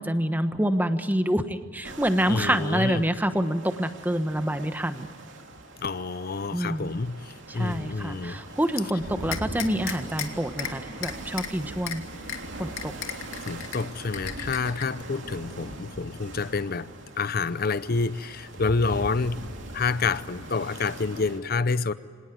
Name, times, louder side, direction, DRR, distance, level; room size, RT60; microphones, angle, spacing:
voice 1, 0.0-5.1 6.5-7.0 7.5-12.0 12.6-12.9, equal, 10° right, 1.1 m, -27 dB
sound 1, 1.8-21.4, right 1 dB, 65° right, 3.2 m, -41 dB
voice 2, 2.3-3.1 5.8-8.4 13.4-16.9 17.2-21.9, left 4 dB, 50° left, 0.6 m, -28 dB
sound 2, 9.3-10.3 10.6-10.7 11.0-11.5 11.9-12.0 12.3-12.4 12.8-13.8 14.1-14.8, left 9 dB, 80° left, 2.2 m, -33 dB
25.5 x 19.0 x 9.4 m
head